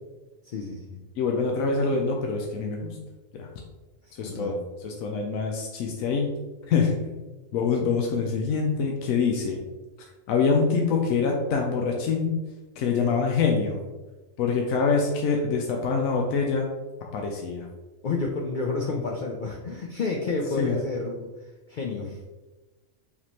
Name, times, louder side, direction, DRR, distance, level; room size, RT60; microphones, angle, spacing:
voice 1, 0.4-1.0 4.0-4.5 18.0-22.2, left 3 dB, 65° left, 0 dB, 0.4 m, -30 dB
voice 2, 1.2-3.0 3.3-3.5 4.2-4.6 4.8-6.3 6.7-6.9 7.5-9.6 10.3-12.4 12.8-13.8 14.4-16.7 17.1-17.7 20.6-20.7, left 5 dB, 90° left, 1 dB, 1.0 m, -25 dB
4.8 x 3.5 x 3.0 m, 1.1 s
omnidirectional pair, 1.4 m